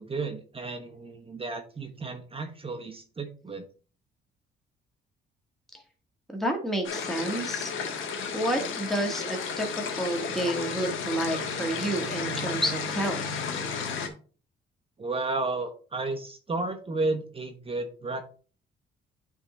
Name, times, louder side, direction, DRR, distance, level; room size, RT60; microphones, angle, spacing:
voice 1, 0.0-3.6 15.0-18.2, right 3 dB, 30° right, 4 dB, 1.0 m, -33 dB
voice 2, 6.3-7.7 8.3-9.7 10.0-13.4, right 1 dB, ahead, 1 dB, 1.6 m, -30 dB
sound 1, 6.8-14.1, left 5 dB, 80° left, 1.4 m, -32 dB
9.6 x 3.7 x 4.2 m, 0.39 s
cardioid pair, 90°, 20 cm